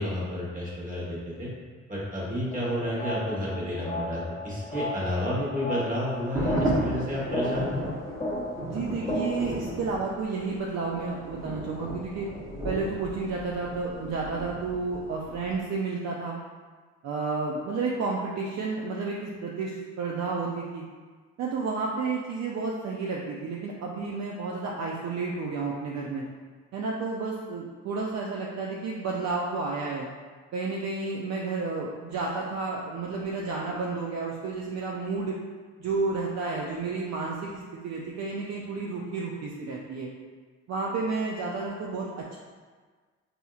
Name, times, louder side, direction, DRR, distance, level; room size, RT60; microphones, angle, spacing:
voice 1, 0.0-1.5 1.9-7.9, equal, 25° right, -7 dB, 1.3 m, -31 dB
sound 1, 2.5-9.5, left 1 dB, 15° left, 0.7 m, -34 dB
sound 2, 6.1-15.6, right 1 dB, 10° right, 0.9 m, -35 dB
voice 2, 8.6-12.3 12.6-16.4 17.0-20.9 21.4-26.2 26.7-30.1 30.5-35.4 35.8-40.1 40.7-42.4, right 4 dB, 60° right, -3 dB, 0.5 m, -31 dB
4.2 x 2.7 x 2.4 m, 1.5 s
cardioid pair, 90°, 30 cm